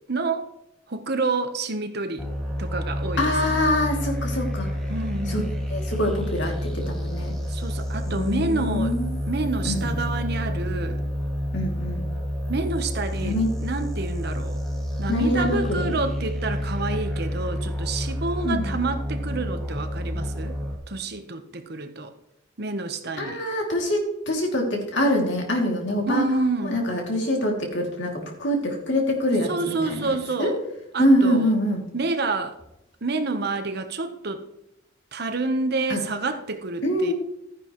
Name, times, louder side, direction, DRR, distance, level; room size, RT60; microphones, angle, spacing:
voice 1, 0.1-0.5 0.9-2.3 2.6-3.6 4.9-5.5 7.5-8.9 9.3-11.0 12.5-14.6 15.0-20.6 20.9-22.1 22.6-23.4 26.1-26.8 29.4-30.6 30.9-31.5 31.9-32.6 33.0-34.4 35.1-37.1, right 3 dB, 55° right, 8 dB, 1.0 m, -28 dB
sound 1, 2.2-20.7, equal, ahead, 2.0 m, -29 dB
voice 2, 3.2-4.7 5.3-5.4 5.7-7.3 8.1-9.1 9.6-10.0 11.5-12.1 13.2-13.5 15.1-15.9 18.4-18.7 23.2-26.3 26.6-30.5 31.0-31.8 35.9-36.0 36.8-37.1, left 1 dB, 65° left, 0 dB, 2.6 m, -24 dB
13.0 x 10.0 x 3.1 m, 0.82 s
head